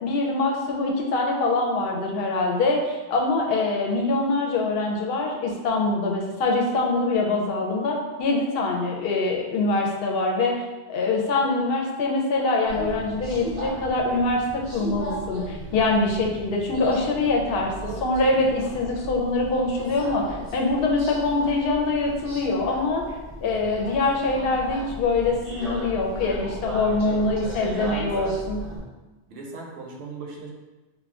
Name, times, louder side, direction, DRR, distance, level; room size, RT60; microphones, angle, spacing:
voice 1, 0.0-10.6 10.9-23.0 23.4-28.6, left 3 dB, 65° left, 0 dB, 0.7 m, -24 dB
Subway metro underground, 12.7-28.8, equal, 35° right, 0.6 m, -36 dB
voice 2, 26.9-27.2 27.7-28.4 29.3-30.5, right 4 dB, 70° right, 0 dB, 0.8 m, -38 dB
2.3 x 2.1 x 3.5 m, 1.1 s
omnidirectional pair, 1.1 m